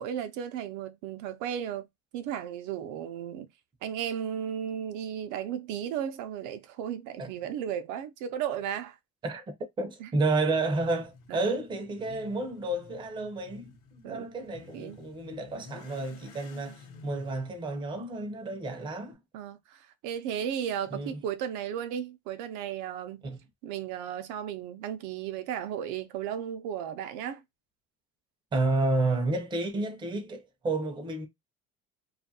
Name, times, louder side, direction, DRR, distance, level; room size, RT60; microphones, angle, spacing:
voice 1, 0.0-1.9 2.1-3.5 3.8-9.0 10.0-10.1 11.3-11.5 14.0-14.3 14.7-15.0 19.3-23.2 23.6-27.4, right 9 dB, 65° right, 0.5 m, -35 dB
voice 2, 9.2-13.7 14.0-19.2 20.9-21.2 23.2-23.4 28.5-31.3, right 2 dB, 15° right, 0.5 m, -31 dB
Motorcycle / Accelerating revving vroom, 10.3-19.1, left 4 dB, 50° left, 0.8 m, -52 dB
2.6 x 2.4 x 2.6 m
cardioid pair, 165°, 33 cm